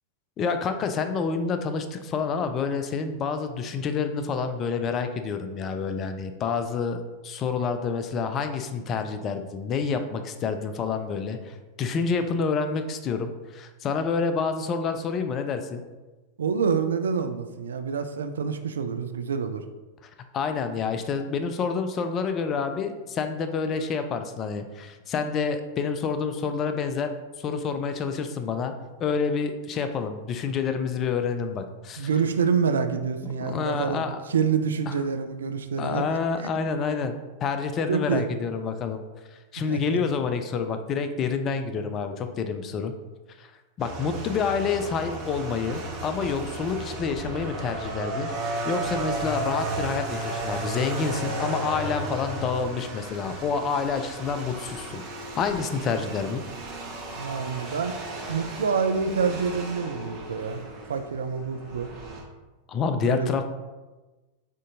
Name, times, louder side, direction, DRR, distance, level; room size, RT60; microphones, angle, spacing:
voice 1, 0.4-7.0 7.2-15.8 20.3-27.1 27.4-28.7 29.0-32.1 33.2-34.2 34.9-35.0 35.8-39.0 39.5-42.9 43.4-43.5 43.8-48.3 48.7-55.0 55.4-56.4 62.7-63.4, left 5 dB, 30° left, 8 dB, 0.4 m, -28 dB
voice 2, 16.4-19.6 32.0-36.0 36.4-36.5 37.9-38.2 39.7-40.0 57.1-58.0 58.3-60.6 60.9-61.9 63.0-63.3, right 6 dB, 65° right, 8 dB, 0.3 m, -27 dB
sound 1, 43.8-62.2, right 2 dB, 35° right, 1.1 m, -34 dB
6.1 x 2.7 x 2.6 m, 1.2 s
figure-of-eight pair, 90°, 0 cm